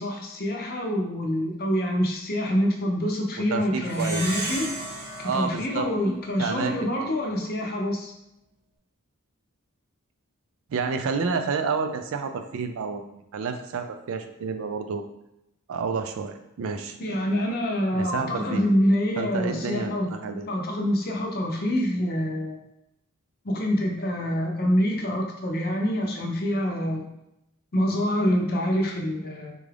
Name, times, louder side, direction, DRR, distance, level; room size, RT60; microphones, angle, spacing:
voice 1, 0.0-4.7 5.2-8.1 17.0-20.1 20.5-22.6 23.4-27.0 27.7-29.6, equal, 45° left, 1 dB, 0.6 m, -26 dB
voice 2, 3.5-4.2 5.2-5.9 6.4-7.1 10.7-15.0 15.7-17.0 17.9-18.6 19.2-20.5, right 5 dB, 65° right, 7 dB, 0.4 m, -30 dB
Plucked string instrument, 3.9-6.7, right 2 dB, 45° right, 0.9 m, -35 dB
3.7 x 2.4 x 3.3 m, 0.83 s
head